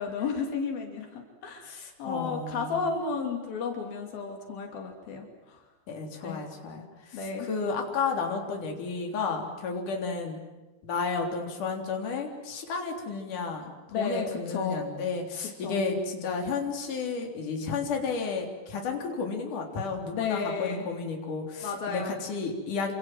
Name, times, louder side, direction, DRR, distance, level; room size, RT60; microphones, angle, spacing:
voice 1, 0.0-5.6 6.2-6.4 7.1-7.5 13.9-14.8 15.6-15.8 20.1-20.9 21.6-22.2, left 5 dB, 85° left, 2 dB, 4.7 m, -33 dB
voice 2, 1.7-2.8 5.9-7.2 7.5-10.4 10.8-13.7 14.0-22.9, left 4 dB, 60° left, 2 dB, 5.0 m, -32 dB
28.5 x 26.5 x 7.6 m, 1.2 s
omnidirectional pair, 4.1 m